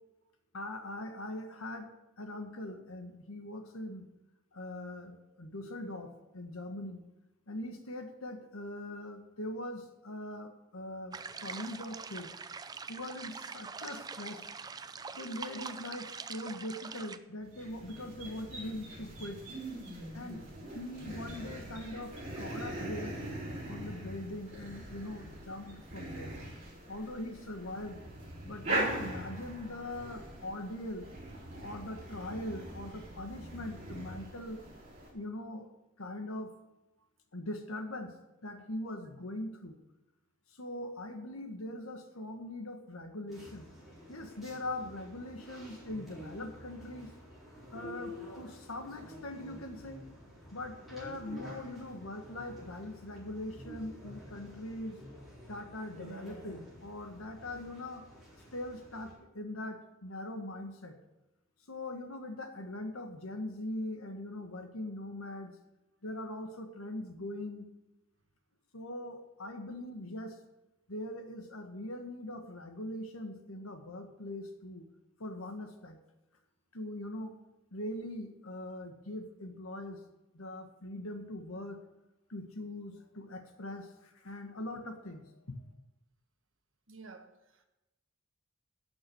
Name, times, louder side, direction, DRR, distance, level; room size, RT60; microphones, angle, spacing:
voice 1, 0.5-1.9 2.2-4.1 4.5-7.0 7.5-12.3 12.9-14.5 15.1-19.4 20.1-20.4 20.7-23.2 23.7-26.4 26.9-28.0 28.4-31.1 31.6-34.6 35.1-35.7 36.0-36.5 37.3-38.1 38.4-39.7 40.5-43.7 44.1-47.1 47.7-50.0 50.5-55.0 55.5-58.0 58.5-61.0 61.7-65.5 66.0-67.6 68.7-70.4 70.9-74.8 75.2-76.0 76.7-77.4 77.7-80.0 80.3-81.8 82.3-85.7, left 1 dB, 90° left, 1.5 m, -41 dB
sound 1, 11.1-17.2, right 5 dB, 20° right, 0.4 m, -44 dB
sound 2, 17.4-35.1, right 1 dB, 35° right, 3.4 m, -41 dB
sound 3, 43.3-59.1, equal, ahead, 4.0 m, -50 dB
voice 2, 86.9-87.6, right 4 dB, 65° right, 1.3 m, -52 dB
11.5 x 6.2 x 6.5 m
head